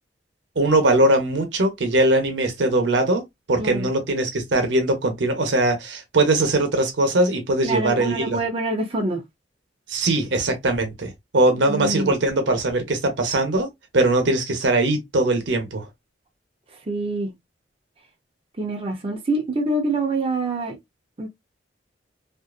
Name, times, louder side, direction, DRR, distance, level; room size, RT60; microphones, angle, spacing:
voice 1, 0.6-3.2 3.5-8.4 9.9-13.7 13.9-15.9, right 2 dB, 80° right, 0.8 m, -21 dB
voice 2, 7.6-9.2 11.7-12.1 16.9-17.3 18.6-20.8 21.2-21.3, right 2 dB, 30° right, 0.5 m, -25 dB
2.6 x 2.4 x 2.2 m
head